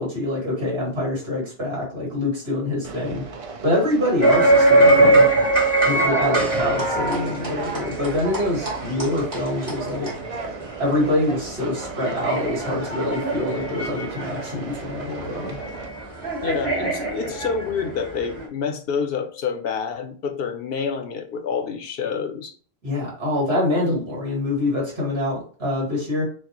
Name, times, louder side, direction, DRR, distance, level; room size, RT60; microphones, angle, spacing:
voice 1, 0.0-3.2 3.6-5.3 5.8-10.1 10.8-15.6 22.8-26.2, left 1 dB, 75° right, -3 dB, 2.1 m, -25 dB
Conversation, 2.8-15.9, right 4 dB, 45° right, 0.5 m, -35 dB
sound 1, 4.2-18.4, right 2 dB, 60° right, 2.0 m, -22 dB
voice 2, 16.4-22.5, left 6 dB, 70° left, 7 dB, 0.8 m, -27 dB
6.1 x 2.1 x 2.9 m, 0.43 s
omnidirectional pair, 1.1 m